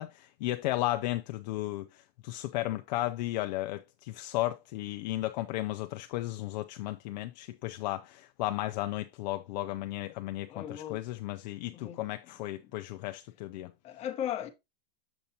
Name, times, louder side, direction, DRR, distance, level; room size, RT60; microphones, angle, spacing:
voice 1, 0.0-13.7, left 16 dB, 45° left, 0.5 m, -34 dB
voice 2, 10.5-11.0 11.7-12.0 13.8-14.5, left 10 dB, 20° left, 0.9 m, -36 dB
7.0 x 6.7 x 2.8 m
supercardioid pair, 165°, 30 cm